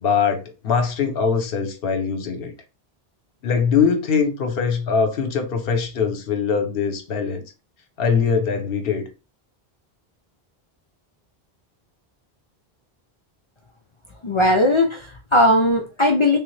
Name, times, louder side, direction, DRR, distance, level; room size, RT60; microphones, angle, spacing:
voice 1, 0.0-2.5 3.4-7.4 8.0-9.1, left 6 dB, 70° left, 0.9 m, -22 dB
voice 2, 14.2-16.4, left 1 dB, 50° left, 0.3 m, -18 dB
3.4 x 2.0 x 3.1 m
omnidirectional pair, 1.0 m